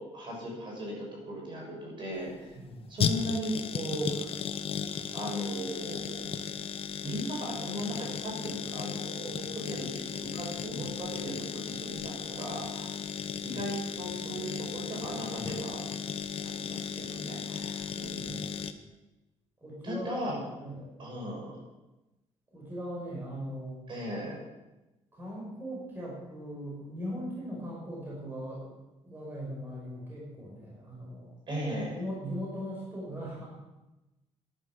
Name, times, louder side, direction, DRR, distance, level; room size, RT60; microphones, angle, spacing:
voice 1, 0.0-2.5 2.9-4.3 5.1-6.3 7.0-12.9 13.4-15.8 16.4-18.5 19.8-20.4 21.0-21.6 23.9-24.4 31.5-32.0, equal, 45° right, -2 dB, 6.7 m, -37 dB
sound 1, 2.1-18.7, left 7 dB, 50° left, 1.0 m, -35 dB
voice 2, 2.5-2.9 18.2-18.7 19.6-20.2 20.6-20.9 22.5-23.8 25.1-28.7 29.0-31.3 31.9-33.5, equal, 20° right, -4 dB, 5.5 m, -39 dB
14.0 x 11.5 x 6.2 m, 1.0 s
cardioid pair, 140°, 12 cm